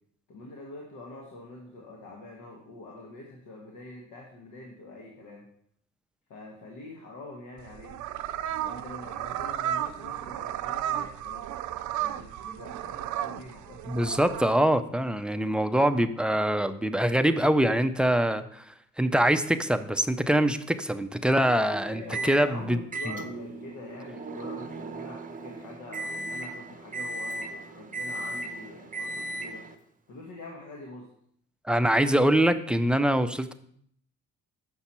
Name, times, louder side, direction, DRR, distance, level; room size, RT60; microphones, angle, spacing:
voice 1, 0.3-5.4 6.3-8.0 8.6-11.4 12.0-13.8 21.8-29.7 30.1-31.1, left 2 dB, 75° left, -1 dB, 1.4 m, -44 dB
sound 1, 7.6-14.5, right 11 dB, 75° right, 0.5 m, -33 dB
voice 2, 13.9-18.6 19.0-22.0 22.3-22.8 23.1-23.2 31.7-33.5, right 1 dB, 5° right, 9 dB, 0.4 m, -24 dB
Microwave oven, 22.1-22.4 22.9-29.7, right 2 dB, 25° right, 0.7 m, -36 dB
6.9 x 5.7 x 4.2 m, 0.67 s
cardioid pair, 90°, 30 cm